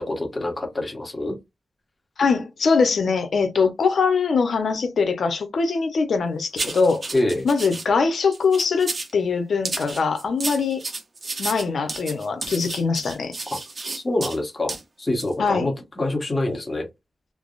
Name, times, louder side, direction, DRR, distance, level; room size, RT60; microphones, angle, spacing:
voice 1, 0.0-1.4 7.1-7.5 13.5-13.6 13.9-16.9, left 1 dB, 25° left, 1.1 m, -26 dB
voice 2, 2.2-7.1 7.4-10.8 11.4-13.4 15.4-15.7, left 5 dB, 80° left, 0.7 m, -22 dB
sound 1, 6.6-7.9 8.3-9.1 9.6-14.4 14.7-14.8 15.2-15.3, right 3 dB, 50° right, 0.8 m, -32 dB
3.3 x 2.0 x 2.4 m
wide cardioid pair, 95°, 0 cm